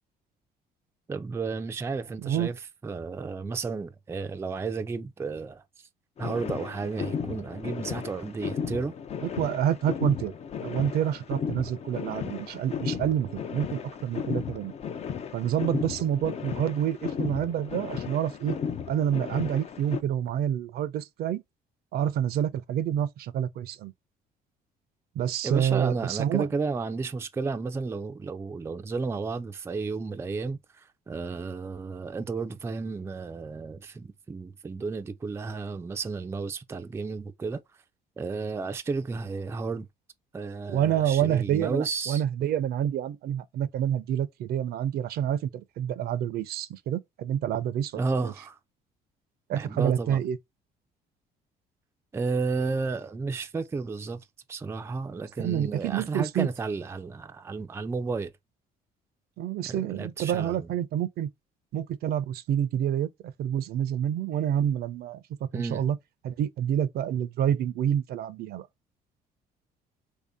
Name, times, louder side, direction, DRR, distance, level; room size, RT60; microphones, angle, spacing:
voice 1, 1.1-2.6 2.8-5.6 6.2-8.9 25.4-37.6 38.2-39.9 40.3-42.2 47.9-48.6 49.5-50.2 52.1-54.2 54.5-58.3 59.7-60.7 65.5-65.8, right 4 dB, 15° right, 0.4 m, -32 dB
voice 2, 2.2-2.5 9.2-10.3 10.6-14.7 15.3-18.6 18.9-21.4 21.9-23.9 25.2-26.5 40.7-48.3 49.5-50.4 55.4-56.5 59.4-61.3 61.7-65.2 65.5-66.0 66.2-68.7, right 10 dB, 65° right, 0.5 m, -28 dB
sound 1, 6.2-20.0, left 7 dB, 40° left, 0.5 m, -35 dB
3.3 x 2.7 x 3.5 m
cardioid pair, 110°, 17 cm